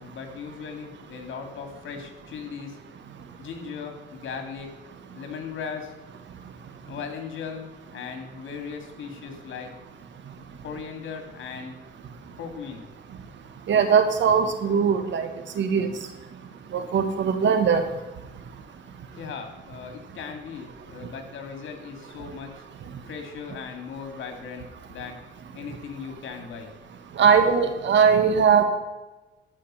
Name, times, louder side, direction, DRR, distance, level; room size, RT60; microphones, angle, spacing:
voice 1, 0.0-2.8 3.4-4.7 5.1-5.9 6.9-9.7 10.6-11.8 12.4-12.9 19.1-22.5 23.1-25.2 25.5-26.7, left 6 dB, 75° left, 5 dB, 2.5 m, -37 dB
voice 2, 13.7-15.3 15.6-15.9 16.7-17.8 27.2-28.6, right 6 dB, 65° right, 7 dB, 1.7 m, -20 dB
14.0 x 5.7 x 5.7 m, 1.1 s
cardioid pair, 90°, 20 cm